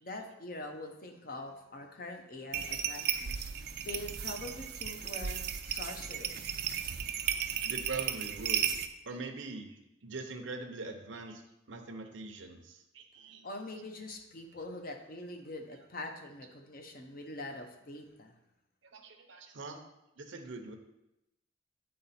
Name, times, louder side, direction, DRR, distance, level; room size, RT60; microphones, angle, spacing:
voice 1, 0.0-6.6 13.4-18.3, left 2 dB, 45° left, 4 dB, 0.8 m, -44 dB
sound 1, 2.5-8.9, right 9 dB, 50° right, 0.4 m, -35 dB
voice 2, 7.2-8.8 9.0-11.4 11.7-13.5 18.9-19.8 20.2-20.7, right 3 dB, 70° right, 4 dB, 0.8 m, -43 dB
8.6 x 3.8 x 4.2 m, 0.89 s
head